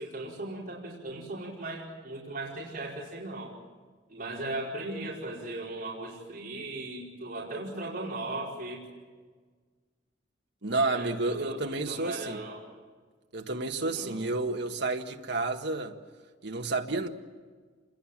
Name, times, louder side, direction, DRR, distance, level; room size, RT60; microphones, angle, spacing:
voice 1, 0.0-3.5 4.1-8.8 10.8-11.6 11.8-12.6 13.8-14.2, right 2 dB, 50° right, -6 dB, 5.0 m, -37 dB
voice 2, 10.6-12.4 13.3-15.9 16.4-17.1, right 3 dB, 65° right, 4 dB, 1.7 m, -30 dB
27.5 x 21.5 x 7.4 m, 1.5 s
head